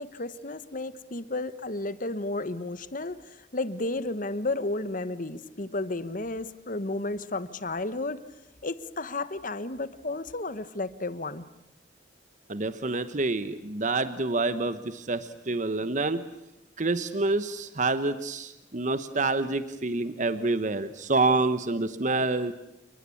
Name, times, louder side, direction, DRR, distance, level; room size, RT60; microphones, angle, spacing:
voice 1, 0.0-8.2 8.6-11.4, left 2 dB, 45° left, 14 dB, 1.3 m, -32 dB
voice 2, 12.5-16.2 16.8-22.5, right 3 dB, 45° right, 11 dB, 1.1 m, -27 dB
29.0 x 21.0 x 8.6 m, 0.82 s
head